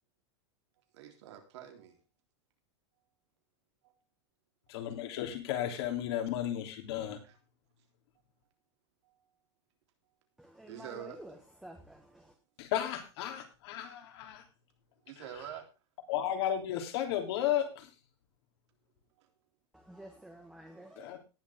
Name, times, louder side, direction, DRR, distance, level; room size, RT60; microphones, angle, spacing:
voice 1, 0.9-2.0 7.2-7.4 9.0-9.2 10.7-11.2 15.1-15.7, right 10 dB, 65° right, 3.6 m, -46 dB
voice 2, 4.7-7.2 12.6-14.4 15.2-15.3 16.1-17.9 21.0-21.2, left 11 dB, 60° left, 3.2 m, -34 dB
voice 3, 10.4-11.4 11.6-12.3 19.7-21.2, right 1 dB, 5° right, 1.5 m, -50 dB
18.5 x 7.5 x 3.6 m
supercardioid pair, 160°, 15 cm